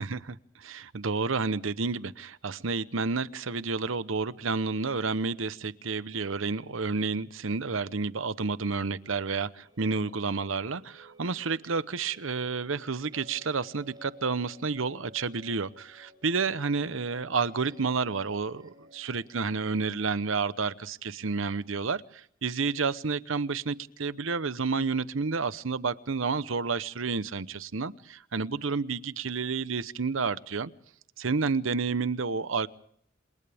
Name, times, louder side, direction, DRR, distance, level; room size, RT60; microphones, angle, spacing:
voice 1, 0.0-30.7 31.2-32.7, right 4 dB, 75° right, 0.9 m, -30 dB
sound 1, 9.4-19.7, left 1 dB, 20° right, 4.2 m, -56 dB
28.0 x 28.0 x 3.5 m
head